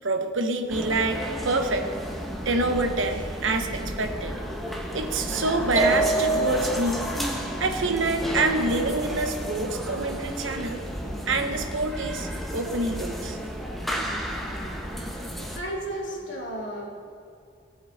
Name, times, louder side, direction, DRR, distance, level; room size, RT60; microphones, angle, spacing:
voice 1, 0.0-1.9 2.4-4.4 4.9-7.0 7.6-10.8 11.3-13.4, right 2 dB, 85° right, 5 dB, 1.2 m, -26 dB
sound 1, 0.7-15.6, equal, ahead, 1.0 m, -32 dB
sound 2, 5.8-6.9, right 3 dB, 45° right, 2.5 m, -24 dB
voice 2, 15.5-16.9, right 1 dB, 70° left, -3 dB, 2.6 m, -33 dB
18.5 x 7.8 x 4.2 m, 2.4 s
head